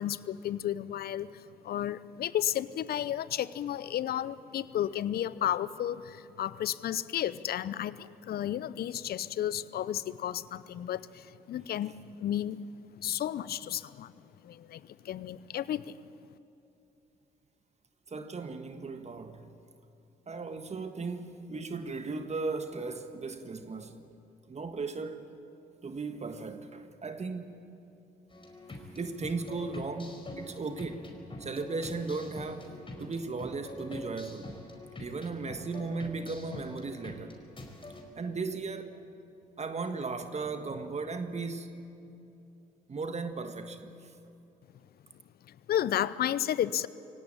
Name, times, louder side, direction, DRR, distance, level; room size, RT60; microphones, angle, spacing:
voice 1, 0.0-12.6 13.0-14.1 14.4-16.0 45.5-46.9, left 11 dB, 60° left, 0.7 m, -33 dB
voice 2, 18.1-19.5 20.3-24.0 24.5-25.3 25.8-27.6 28.9-31.1 31.4-32.7 33.0-34.6 35.0-37.3 38.2-39.0 39.6-41.8 42.9-44.1, right 4 dB, 40° right, 1.6 m, -36 dB
sound 1, 28.3-38.0, left 2 dB, 30° left, 4.9 m, -45 dB
24.0 x 17.5 x 8.9 m
hypercardioid pair, 45°, 18 cm